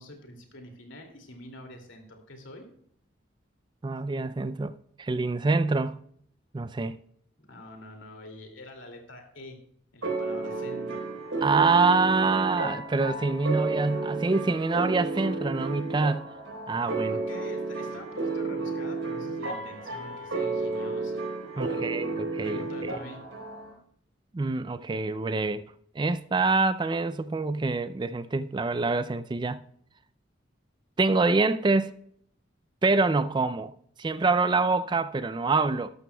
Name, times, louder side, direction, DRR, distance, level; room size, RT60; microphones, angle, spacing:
voice 1, 0.0-2.7 7.4-9.6 9.9-11.0 17.1-21.2 21.5-21.9 22.2-23.2, left 1 dB, 75° left, 2.4 m, -46 dB
voice 2, 3.8-4.7 5.0-6.0 6.5-7.0 11.4-16.3 16.7-17.2 21.6-23.0 24.3-25.7 26.0-29.6 31.0-31.9 32.8-33.7 34.0-35.9, right 3 dB, 25° right, 0.3 m, -26 dB
sound 1, 10.0-23.7, right 3 dB, 85° right, 3.9 m, -32 dB
12.5 x 12.0 x 2.2 m
head